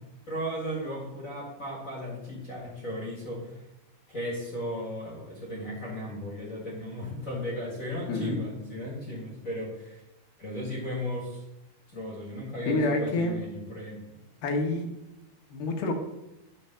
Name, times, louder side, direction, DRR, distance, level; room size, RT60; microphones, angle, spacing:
voice 1, 0.3-3.6 4.1-10.0 10.4-11.4 11.9-14.2, equal, 40° left, -4 dB, 1.3 m, -36 dB
voice 2, 8.1-8.4 12.7-13.4 14.4-14.9 15.5-15.9, left 2 dB, 80° left, 3 dB, 2.9 m, -27 dB
10.0 x 3.4 x 6.6 m, 0.93 s
omnidirectional pair, 4.2 m